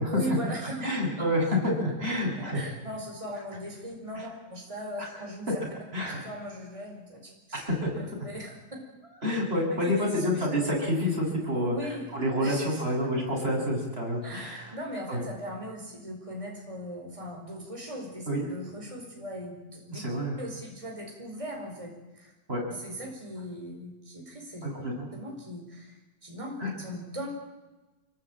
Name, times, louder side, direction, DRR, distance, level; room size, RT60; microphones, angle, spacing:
voice 1, 0.1-0.9 1.2-1.3 2.4-5.5 6.0-7.6 7.9-8.6 9.7-10.5 11.5-12.1 12.4-12.8 14.2-20.0 20.4-22.3 22.7-24.7 25.1-27.3, equal, 15° right, 1 dB, 4.8 m, -39 dB
voice 2, 0.8-2.7 4.1-4.2 5.0-5.1 5.9-6.2 7.5-7.9 9.2-14.7 15.1-15.2 18.3-18.4 19.9-20.4 22.5-22.6 24.6-25.1 26.6-26.7, left 1 dB, 35° right, -1 dB, 8.1 m, -28 dB
26.0 x 22.5 x 8.9 m, 1.1 s
omnidirectional pair, 1.9 m